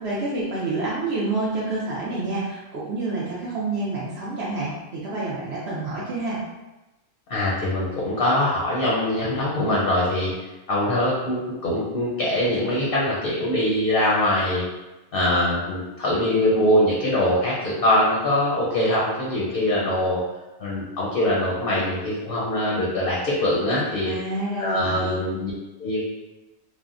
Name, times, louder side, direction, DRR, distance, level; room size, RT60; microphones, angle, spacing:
voice 1, 0.0-6.4 24.0-25.2, right 2 dB, 60° right, -7 dB, 0.8 m, -28 dB
voice 2, 7.3-10.3 10.7-14.6 15.1-20.2 20.6-24.1 24.6-25.5 25.8-26.0, left 1 dB, 55° left, -6 dB, 0.7 m, -23 dB
3.4 x 2.0 x 2.5 m, 1.0 s
omnidirectional pair, 1.4 m